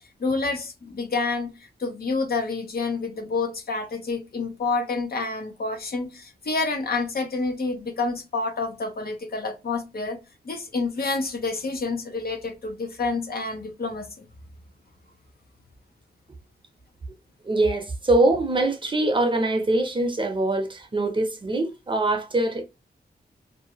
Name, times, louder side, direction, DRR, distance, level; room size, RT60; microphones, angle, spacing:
voice 1, 0.2-1.5 1.8-10.2 10.4-14.2, left 3 dB, 60° left, 0.8 m, -28 dB
voice 2, 17.4-22.6, right 2 dB, 30° right, 0.7 m, -23 dB
2.7 x 2.3 x 2.8 m
wide cardioid pair, 110°, 18 cm